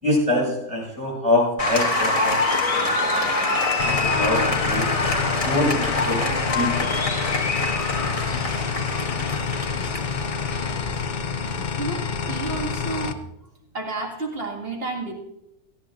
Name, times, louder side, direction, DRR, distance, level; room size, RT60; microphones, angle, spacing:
voice 1, 0.0-4.8 5.4-6.9, left 1 dB, 20° right, -4 dB, 5.9 m, -25 dB
Applause, 1.6-11.7, left 2 dB, 25° left, 1.0 m, -25 dB
sound 1, 3.8-13.1, left 5 dB, 65° left, 0.4 m, -28 dB
voice 2, 11.8-13.2 13.7-15.1, right 3 dB, 35° right, 0 dB, 2.2 m, -31 dB
17.5 x 13.5 x 2.5 m, 0.85 s
omnidirectional pair, 1.7 m